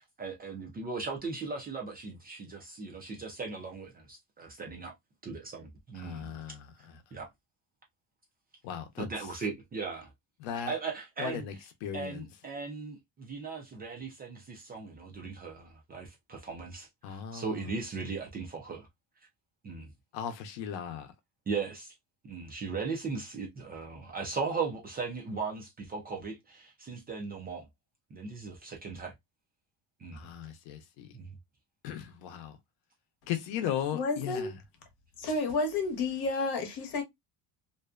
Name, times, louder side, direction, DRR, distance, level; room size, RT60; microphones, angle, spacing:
voice 1, 0.0-4.9 5.2-6.4 7.1-7.3 9.0-10.1 10.5-11.5 11.9-18.9 19.6-19.9 21.5-21.9 22.2-27.6 28.1-29.1 30.0-30.3 31.1-31.3, right 4 dB, 25° right, 0.3 m, -38 dB
voice 2, 6.0-6.7 8.6-9.1 10.4-10.7 11.2-11.5 11.8-12.2 17.0-17.8 20.1-21.1 30.1-31.1 31.8-32.6 33.3-34.6, left 9 dB, 85° left, 0.7 m, -37 dB
voice 3, 33.9-34.5 35.2-37.0, left 3 dB, 65° left, 1.0 m, -31 dB
2.5 x 2.1 x 2.3 m
cardioid pair, 165°, 43 cm